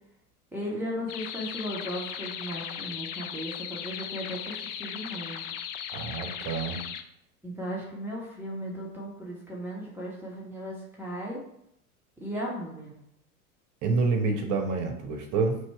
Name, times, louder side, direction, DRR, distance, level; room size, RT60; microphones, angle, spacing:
voice 1, 0.5-5.5 7.4-11.4 12.2-12.9, equal, 5° right, -5 dB, 1.2 m, -36 dB
sound 1, 1.1-7.0, left 9 dB, 40° left, 0.5 m, -37 dB
voice 2, 5.9-6.8 13.8-15.6, right 4 dB, 45° right, 4 dB, 1.0 m, -27 dB
3.2 x 2.9 x 4.6 m, 0.76 s
hypercardioid pair, 90°, 43 cm